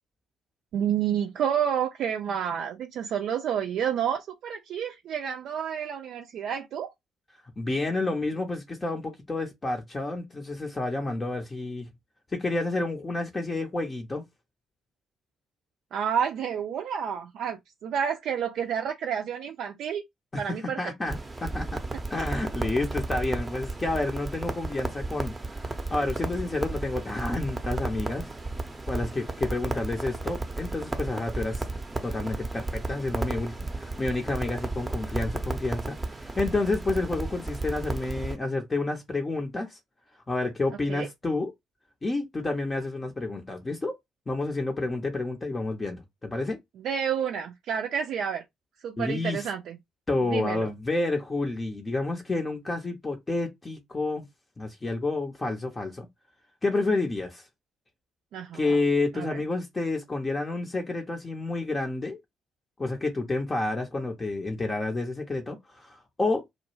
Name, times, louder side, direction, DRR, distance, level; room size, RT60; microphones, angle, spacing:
voice 1, 0.7-6.9 15.9-20.0 20.4-20.8 40.9-41.1 46.8-48.4 48.8-49.8 50.2-50.7 58.3-58.8 59.1-59.4, right 8 dB, 60° right, 0.4 m, -30 dB
voice 2, 7.6-11.9 12.3-14.2 20.3-21.8 22.1-25.3 25.9-28.3 28.9-31.7 32.0-39.8 40.3-41.5 42.0-44.0 44.3-46.6 49.0-49.5 50.1-54.3 54.6-56.1 56.6-57.5 58.5-62.2 62.8-66.4, left 2 dB, 25° left, 0.6 m, -29 dB
Crackle, 21.1-38.4, right 2 dB, 20° right, 0.6 m, -33 dB
2.1 x 2.0 x 3.1 m
hypercardioid pair, 45°, 0 cm